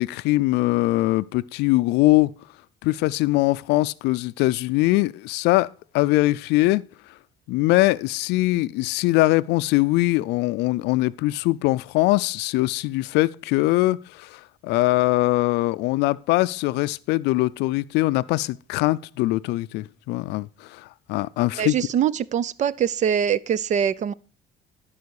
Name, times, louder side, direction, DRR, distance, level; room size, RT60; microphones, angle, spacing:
voice 1, 0.0-2.3 2.8-5.7 5.9-6.8 7.5-21.8, left 19 dB, 90° left, 0.4 m, -22 dB
voice 2, 21.6-24.1, right 8 dB, 45° right, 0.5 m, -23 dB
12.0 x 5.6 x 4.7 m
cardioid pair, 110°, 17 cm